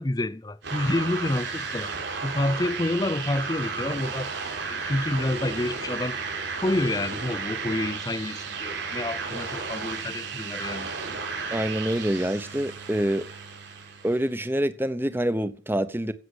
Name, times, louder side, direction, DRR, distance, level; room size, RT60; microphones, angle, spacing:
voice 1, 0.0-1.9 2.2-4.3 4.7-6.2 6.6-10.9, left 1 dB, 20° left, 0.5 m, -28 dB
sound 1, 0.6-14.3, right 4 dB, 65° right, 5.9 m, -33 dB
voice 2, 11.5-13.3 14.0-16.1, right 1 dB, 10° right, 0.8 m, -26 dB
16.0 x 6.6 x 8.0 m
head